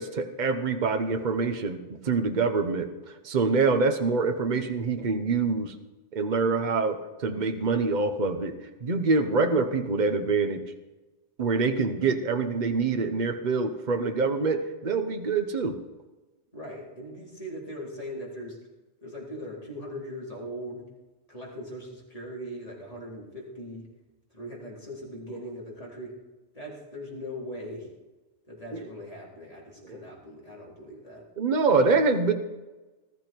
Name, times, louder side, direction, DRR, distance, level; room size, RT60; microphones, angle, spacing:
voice 1, 0.0-2.9 3.2-5.7 6.1-8.5 8.8-10.6 11.4-15.8 28.7-28.9 29.9-30.0 31.4-32.3, right 4 dB, 40° right, 7 dB, 1.1 m, -25 dB
voice 2, 16.5-18.6 19.0-20.8 21.3-23.9 24.3-26.1 26.5-27.9 28.5-31.3, equal, 30° left, -4 dB, 4.1 m, -40 dB
20.0 x 13.0 x 4.6 m, 1.2 s
omnidirectional pair, 1.2 m